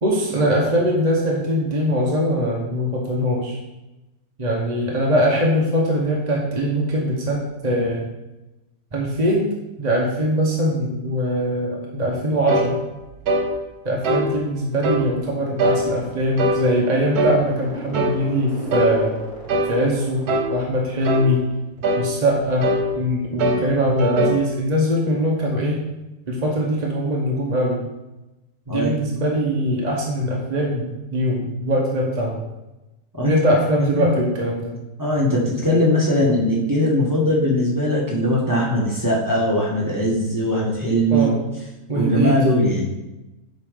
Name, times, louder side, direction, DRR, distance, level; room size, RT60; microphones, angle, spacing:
voice 1, 0.0-3.6 4.4-8.0 8.9-9.5 9.8-12.8 13.8-19.1 19.7-21.5 22.0-25.8 26.3-27.8 28.7-32.4 33.2-34.7 41.1-41.4 41.9-42.8, equal, 35° right, -3 dB, 0.9 m, -22 dB
sound 1, 12.5-12.7 13.3-13.5 14.0-14.3 14.8-15.1 15.6-15.8 16.4-16.6 17.1-17.4 17.9-18.2 18.7-18.9 19.5-19.8 20.3-20.5 21.0-21.3 21.8-22.1 22.6-22.9 23.4-23.7 24.0-24.4, right 1 dB, 80° right, 1.4 m, -21 dB
sound 2, 15.2-21.4, right 1 dB, 45° left, 1.8 m, -37 dB
voice 2, 35.0-41.3 41.9-42.8, equal, 15° right, -5 dB, 1.3 m, -20 dB
7.9 x 3.7 x 5.0 m, 1.0 s
omnidirectional pair, 1.6 m